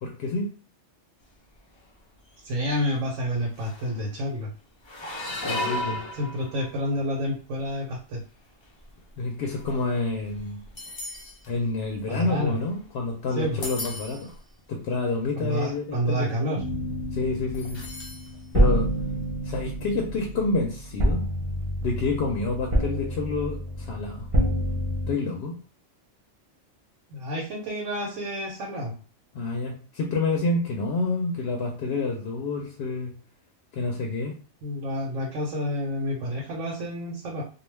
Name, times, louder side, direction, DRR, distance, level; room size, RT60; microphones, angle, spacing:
voice 1, 0.0-0.5 5.4-6.0 9.2-10.6 11.5-14.3 14.7-16.3 17.1-17.8 18.5-18.9 19.4-21.3 21.8-24.3 25.1-25.6 29.3-33.1 33.7-34.3, left 3 dB, 65° left, 1 dB, 0.7 m, -28 dB
sound 1, 1.5-1.9 2.3-2.5 3.2-3.3 3.5-4.1 4.8-7.0 7.6-7.9 8.6-13.1 13.4-14.4 15.1-15.2 15.4-15.8 17.5-18.3 18.7-18.8 20.1-20.2, left 2 dB, 45° left, 0.3 m, -36 dB
voice 2, 2.4-4.5 6.1-8.2 12.1-12.6 13.4-13.6 15.4-16.6 27.1-28.9 34.6-37.4, equal, 90° right, -2 dB, 1.1 m, -29 dB
sound 2, 16.5-25.1, right 1 dB, 35° right, 0.5 m, -28 dB
2.3 x 2.2 x 3.2 m, 0.40 s
omnidirectional pair, 1.3 m